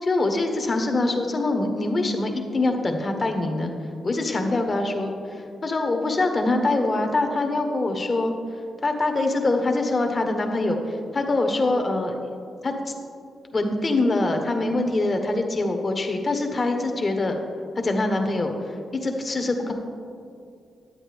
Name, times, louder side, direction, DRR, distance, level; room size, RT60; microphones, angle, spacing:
voice 1, 0.0-3.7 4.0-5.1 5.6-8.3 8.8-12.3 12.6-12.9 13.5-17.3 17.8-18.7 19.0-19.7, left 2 dB, 35° left, 4 dB, 1.1 m, -24 dB
11.0 x 8.5 x 3.5 m, 2.4 s
cardioid pair, 90°, 0 cm